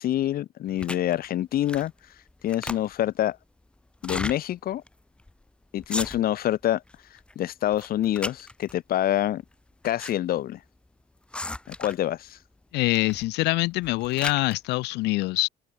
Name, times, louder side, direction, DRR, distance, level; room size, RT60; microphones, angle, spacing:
voice 1, 0.0-1.9 2.4-3.4 4.0-4.8 5.7-6.8 7.3-9.4 9.8-10.6 11.7-12.4, left 12 dB, 60° left, 1.5 m, -26 dB
sound 1, 0.8-1.1 1.6-2.0 2.3-3.1 3.9-4.4 4.9-5.0 5.2-5.4 5.8-6.4 6.9-7.3 7.7-8.7 9.5-10.1 10.4-10.5 11.3-12.1 12.9-13.3 13.7-14.6, left 2 dB, 5° left, 0.4 m, -35 dB
voice 2, 12.7-15.5, left 20 dB, 85° left, 0.6 m, -24 dB
cardioid pair, 110°, 17 cm